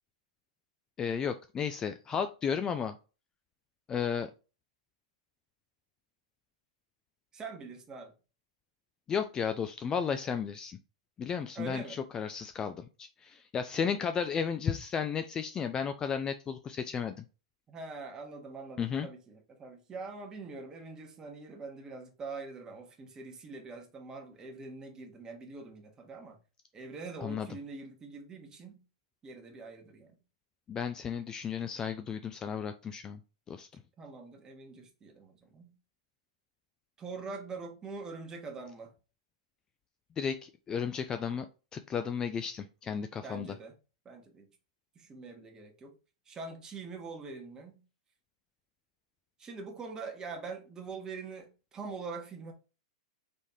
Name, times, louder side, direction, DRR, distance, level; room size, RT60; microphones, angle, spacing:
voice 1, 1.0-3.0 3.9-4.3 9.1-10.8 11.2-17.2 18.8-19.1 27.2-27.5 30.7-33.2 33.5-33.7 40.2-41.5 41.7-43.5, left 7 dB, 20° left, 0.3 m, -33 dB
voice 2, 7.3-8.1 11.5-12.0 17.7-26.4 26.7-28.8 29.2-30.2 34.0-35.7 37.0-38.9 43.2-43.7 44.0-44.5 44.9-46.0 46.3-47.8 49.4-52.5, right 4 dB, 20° right, 1.2 m, -44 dB
4.2 x 3.1 x 3.6 m
hypercardioid pair, 135°, 4 cm